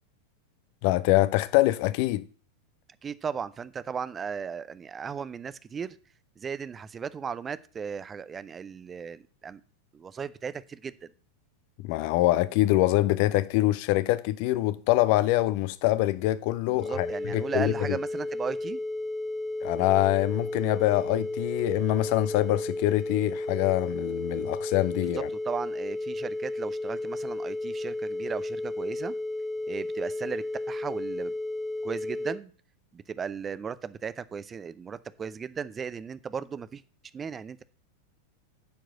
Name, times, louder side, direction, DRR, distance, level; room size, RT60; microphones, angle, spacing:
voice 1, 0.8-2.2 11.8-17.1 17.3-17.7 19.6-25.3, left 16 dB, 45° left, 0.6 m, -24 dB
voice 2, 3.0-6.0 6.4-9.6 9.9-11.1 16.7-18.8 25.0-25.1 25.4-29.1 29.7-31.3 31.8-32.5 32.9-36.8 37.1-37.6, right 6 dB, 20° right, 0.6 m, -36 dB
sound 1, 16.8-32.4, left 2 dB, 10° left, 1.4 m, -33 dB
10.0 x 4.8 x 7.8 m
figure-of-eight pair, 90°, 0 cm